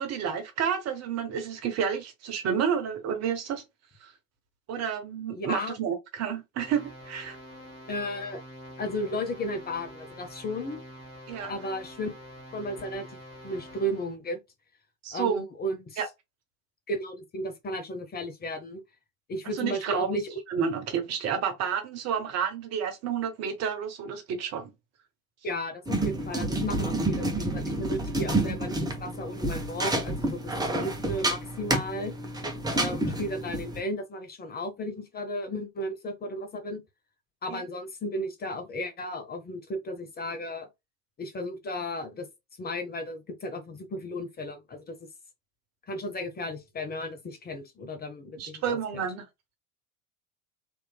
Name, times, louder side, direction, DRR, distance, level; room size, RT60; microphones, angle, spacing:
voice 1, 0.0-3.6 4.0-4.1 4.7-7.4 11.3-11.5 15.0-15.4 16.0-16.1 19.5-20.1 20.5-24.7 30.8-30.9 32.7-32.9 37.5-37.6 48.4-49.2, right 7 dB, 40° right, 1.0 m, -30 dB
voice 2, 5.3-5.7 7.9-8.4 8.8-10.8 11.5-12.1 12.5-13.2 13.4-14.4 15.1-16.0 16.9-18.8 19.3-20.3 25.4-32.1 32.7-36.8 37.4-40.7 41.2-42.3 42.6-45.0 45.9-49.0, left 1 dB, 20° left, 0.9 m, -34 dB
sound 1, 6.6-14.1, equal, 85° left, 1.6 m, -46 dB
sound 2, 25.9-33.8, right 2 dB, 10° right, 1.0 m, -29 dB
3.5 x 3.0 x 2.2 m
figure-of-eight pair, 75°, 42 cm